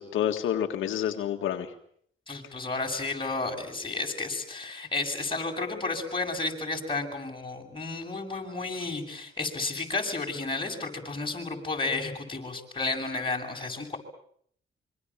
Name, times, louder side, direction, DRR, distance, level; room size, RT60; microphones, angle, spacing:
voice 1, 0.0-1.7, left 10 dB, 85° left, 4 dB, 1.8 m, -28 dB
voice 2, 2.3-14.0, left 3 dB, 25° left, 1 dB, 7.9 m, -32 dB
26.0 x 25.0 x 7.5 m, 0.65 s
cardioid pair, 75°, 20 cm